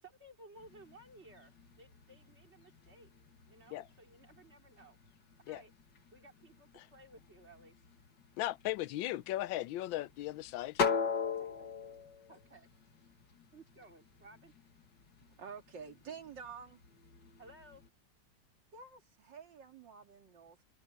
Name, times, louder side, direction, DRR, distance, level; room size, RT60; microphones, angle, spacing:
voice 1, 0.0-1.5 1.8-3.1 3.5-5.0 5.5-5.7 6.1-7.8 11.4-11.7 12.3-12.7 13.5-14.5 17.4-17.8, right 2 dB, 35° right, 3.7 m, -57 dB
sound 1, 0.5-17.9, left 6 dB, 65° left, 2.5 m, -43 dB
voice 2, 8.4-10.8, left 15 dB, 85° left, 1.4 m, -37 dB
voice 3, 15.4-16.8 18.7-20.6, right 6 dB, 70° right, 2.9 m, -49 dB
omnidirectional pair, 2.0 m